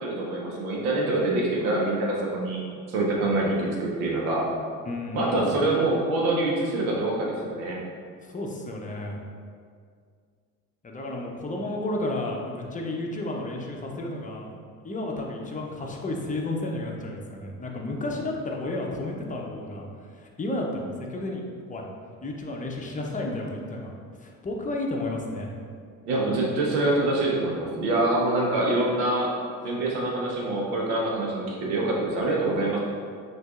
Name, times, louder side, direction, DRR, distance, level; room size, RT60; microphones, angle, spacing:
voice 1, 0.0-2.6 2.9-4.4 5.1-7.8 26.1-29.3 29.6-32.8, right 2 dB, 75° right, -3 dB, 1.1 m, -25 dB
voice 2, 4.8-5.5 8.2-9.2 10.8-14.6 14.8-19.9 20.1-21.4 21.7-21.8 22.2-23.9 24.2-25.5, left 2 dB, 15° left, 0 dB, 0.6 m, -32 dB
6.0 x 2.6 x 2.4 m, 2.1 s
hypercardioid pair, 65°, 45 cm